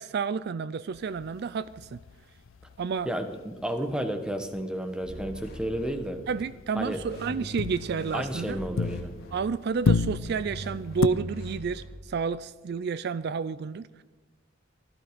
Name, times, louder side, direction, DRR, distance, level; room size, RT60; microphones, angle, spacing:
voice 1, 0.0-2.0 2.8-3.1 6.3-8.6 9.3-14.0, right 5 dB, 55° right, 17 dB, 0.4 m, -30 dB
sound 1, 0.9-4.6 4.9-5.3 5.5-9.4 9.7-11.1, left 4 dB, 85° left, 0.4 m, -32 dB
voice 2, 3.0-6.2 6.8-7.0 8.1-9.1, right 1 dB, 5° right, 7 dB, 1.1 m, -32 dB
sound 2, 5.0-6.4 6.7-9.6 10.2-11.9, equal, 55° left, 2.6 m, -42 dB
15.5 x 13.0 x 5.1 m, 1.2 s
head